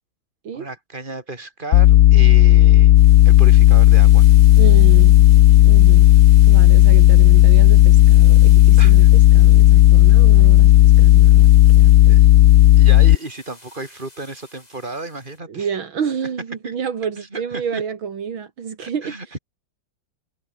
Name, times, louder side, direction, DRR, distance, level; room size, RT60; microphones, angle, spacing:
voice 1, 0.5-3.0 3.2-4.3 8.8-9.1 12.1-12.2 12.8-15.7 16.6-16.7 17.2-17.8 18.8-19.4, right 2 dB, 25° right, 4.4 m, -33 dB
sound 1, 1.7-13.2, left 14 dB, 80° left, 0.8 m, -10 dB
sound 2, 2.9-15.4, left 1 dB, 20° left, 4.4 m, -46 dB
voice 2, 4.6-5.1 5.6-6.1 6.5-11.5 11.8-12.2 15.5-19.2, right 7 dB, 75° right, 2.8 m, -29 dB
omnidirectional pair, 2.2 m